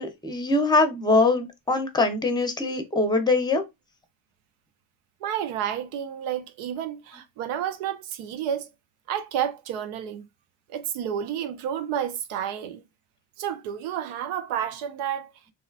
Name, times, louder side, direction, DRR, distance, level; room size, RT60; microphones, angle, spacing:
voice 1, 0.0-3.6, left 3 dB, 10° left, 0.6 m, -23 dB
voice 2, 5.2-8.7 9.1-10.2 10.7-12.8 13.4-15.3, right 9 dB, 85° right, 0.6 m, -30 dB
2.8 x 2.2 x 2.3 m
supercardioid pair, 60°, 48 cm